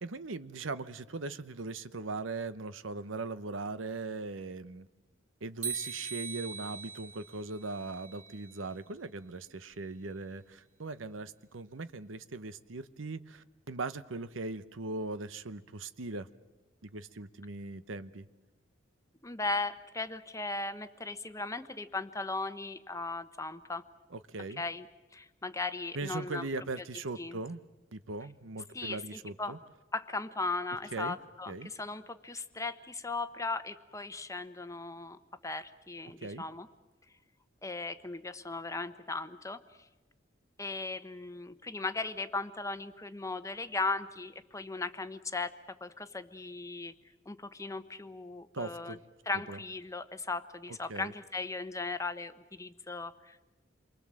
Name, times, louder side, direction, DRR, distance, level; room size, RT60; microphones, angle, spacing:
voice 1, 0.0-4.9 5.4-16.3 16.8-18.3 24.1-24.6 25.9-27.6 27.9-29.6 30.9-31.2 31.5-31.7 36.1-36.4 48.5-49.0 49.5-49.6 50.9-51.1, right 3 dB, 85° right, 0.9 m, -39 dB
sound 1, 5.6-8.7, right 6 dB, 40° right, 2.1 m, -41 dB
voice 2, 19.2-23.8 24.6-24.9 25.1-26.5 27.2-27.4 28.7-29.6 29.9-36.7 37.6-39.6 40.6-45.5 45.8-46.9 47.3-49.0 49.3-53.5, left 3 dB, 15° left, 1.0 m, -37 dB
28.0 x 23.5 x 7.6 m
head